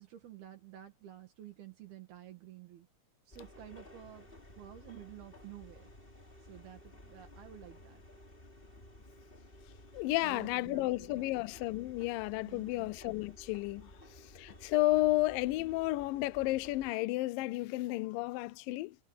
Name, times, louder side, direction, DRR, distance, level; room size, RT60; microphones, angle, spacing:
voice 1, 0.0-2.9 3.3-5.9 6.4-8.0 10.2-11.3 12.5-12.9, right 11 dB, 75° right, 4.1 m, -51 dB
sound 1, 3.3-16.9, left 1 dB, 15° left, 3.0 m, -55 dB
voice 2, 9.9-13.9 14.4-19.0, left 19 dB, 80° left, 2.1 m, -32 dB
omnidirectional pair, 4.4 m